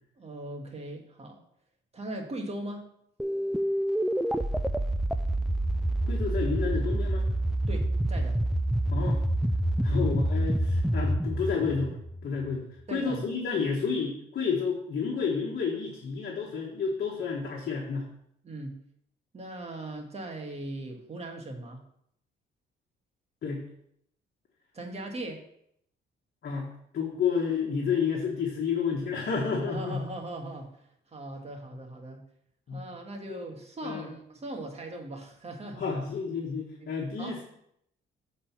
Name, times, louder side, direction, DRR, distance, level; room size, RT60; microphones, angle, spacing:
voice 1, 0.2-1.4 1.9-2.8 7.7-8.4 9.9-10.1 12.9-13.2 18.4-18.7 19.3-21.8 24.7-25.4 29.7-32.2 32.7-35.9 36.8-36.9 37.2-37.4, right 1 dB, 30° right, 2 dB, 1.7 m, -39 dB
sound 1, 3.2-12.5, right 1 dB, ahead, 0.4 m, -27 dB
voice 2, 6.0-7.2 8.9-9.2 9.8-11.9 12.2-18.1 23.4-23.6 26.4-30.0 32.7-32.8 33.3-33.4 33.8-34.1 35.7-37.4, left 5 dB, 55° left, -2 dB, 1.4 m, -30 dB
7.7 x 4.1 x 5.7 m, 0.72 s
cardioid pair, 90°, 20 cm